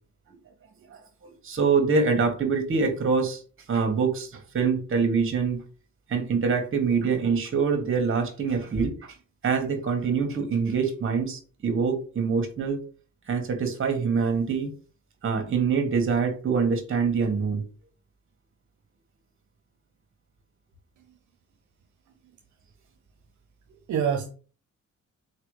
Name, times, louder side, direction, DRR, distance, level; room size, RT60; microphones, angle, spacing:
voice 1, 1.4-3.4 3.7-5.6 6.1-9.1 9.4-12.8 13.3-14.7 15.2-17.6, right 5 dB, 45° right, 5 dB, 1.5 m, -25 dB
voice 2, 23.7-24.3, right 7 dB, 75° right, 5 dB, 0.8 m, -28 dB
4.4 x 3.3 x 3.2 m, 0.38 s
cardioid pair, 90°, 30 cm